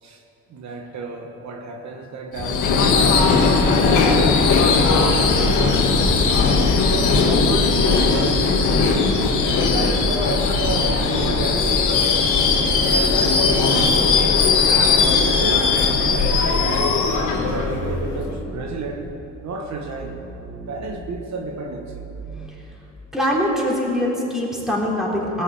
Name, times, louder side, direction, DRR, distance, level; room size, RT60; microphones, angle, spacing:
voice 1, 0.5-5.8 6.3-9.1 9.6-12.4 12.8-14.4 14.9-15.6 15.9-17.0 17.3-19.1 19.4-20.2 20.7-22.0, right 3 dB, 65° right, 2 dB, 1.3 m, -31 dB
Subway metro underground / Screech, 2.4-18.3, left 4 dB, 90° left, 1.6 m, -18 dB
sound 1, 10.0-11.6 12.5-14.6 15.3-22.5, right 3 dB, 90° right, 3.6 m, -38 dB
voice 2, 23.1-25.4, equal, ahead, -5 dB, 3.6 m, -23 dB
17.0 x 6.3 x 8.1 m, 3.0 s
cardioid pair, 90°, 30 cm